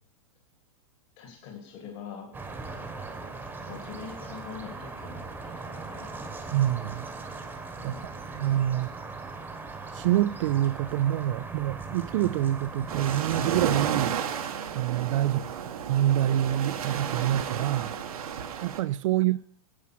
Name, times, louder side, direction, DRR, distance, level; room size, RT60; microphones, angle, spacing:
voice 1, 1.2-2.4 3.6-6.3 7.8-8.2 15.2-15.5, left 7 dB, 50° left, 2.4 m, -44 dB
sound 1, 2.3-13.9, right 3 dB, 10° right, 1.1 m, -39 dB
voice 2, 6.5-7.1 7.8-8.9 9.9-14.2 14.7-15.6 15.9-17.9 18.6-19.4, right 13 dB, 60° right, 0.4 m, -26 dB
sound 2, 12.9-18.8, right 7 dB, 85° right, 1.3 m, -32 dB
9.4 x 7.5 x 6.0 m
hypercardioid pair, 140°, 18 cm